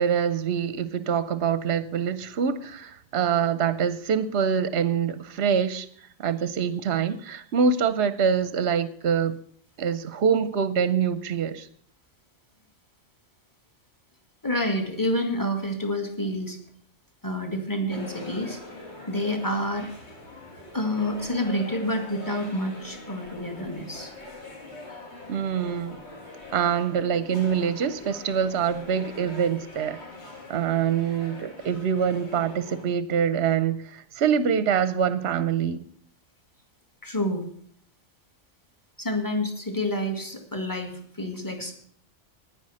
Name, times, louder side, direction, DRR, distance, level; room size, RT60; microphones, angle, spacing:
voice 1, 0.0-9.4 9.8-11.7 25.3-26.0 26.5-30.0 30.5-35.9, right 7 dB, 60° right, 14 dB, 0.9 m, -25 dB
voice 2, 14.4-16.6 17.2-18.6 19.1-19.9 20.7-24.1 37.0-37.5 39.0-41.7, left 1 dB, 15° left, 4 dB, 1.8 m, -28 dB
sound 1, 17.9-32.8, left 2 dB, 55° left, 2.8 m, -43 dB
9.8 x 9.8 x 6.2 m, 0.62 s
omnidirectional pair, 1.3 m